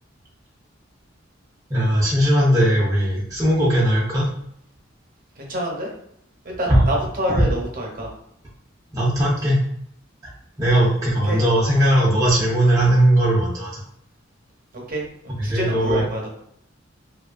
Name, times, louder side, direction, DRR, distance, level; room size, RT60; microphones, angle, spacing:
voice 1, 1.7-4.3 6.7-6.9 8.9-9.6 10.6-13.8 15.4-16.0, right 1 dB, 20° right, -6 dB, 0.5 m, -18 dB
voice 2, 5.4-5.9 6.6-8.1 11.2-11.4 14.9-16.3, right 1 dB, 45° right, -1 dB, 0.7 m, -27 dB
2.7 x 2.2 x 2.4 m, 0.72 s
head